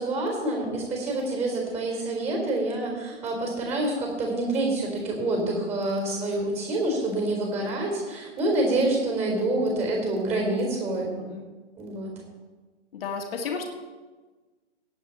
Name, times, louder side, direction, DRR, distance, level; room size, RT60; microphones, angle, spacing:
voice 1, 0.0-11.1 11.8-12.1, right 2 dB, 20° right, 1 dB, 4.2 m, -27 dB
voice 2, 11.1-11.5 12.9-13.7, left 5 dB, 50° left, 2 dB, 2.1 m, -33 dB
17.5 x 8.6 x 4.3 m, 1.3 s
figure-of-eight pair, 130°, 36 cm